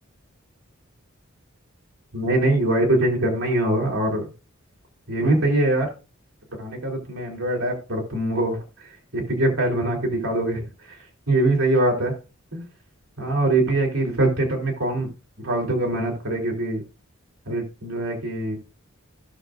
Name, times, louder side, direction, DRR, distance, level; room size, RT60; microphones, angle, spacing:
voice 1, 2.1-4.3 5.1-5.9 6.5-11.0 11.3-12.1 12.5-12.6 13.2-15.1 15.4-16.8 17.4-18.6, right 1 dB, 80° right, 0 dB, 3.3 m, -23 dB
17.0 x 6.4 x 2.6 m, 0.32 s
head